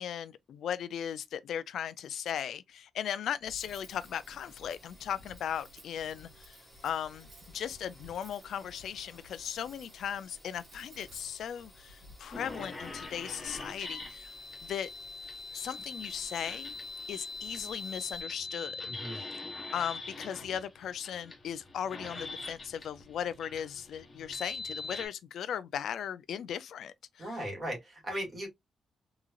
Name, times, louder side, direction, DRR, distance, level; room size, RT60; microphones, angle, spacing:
voice 1, 0.0-6.6 6.8-14.3 14.6-14.9 15.5-16.8 17.1-18.8 19.7-27.3, left 9 dB, 70° left, 0.3 m, -37 dB
Cutlery silverware, 3.4-12.1, equal, 65° right, 1.9 m, -56 dB
sound 1, 3.7-18.2, equal, ahead, 1.6 m, -57 dB
sound 2, 12.3-25.1, left 3 dB, 25° left, 1.0 m, -43 dB
voice 2, 18.8-19.2 27.2-28.5, equal, 25° right, 2.1 m, -37 dB
3.7 x 3.0 x 2.3 m
wide cardioid pair, 180°, 0 cm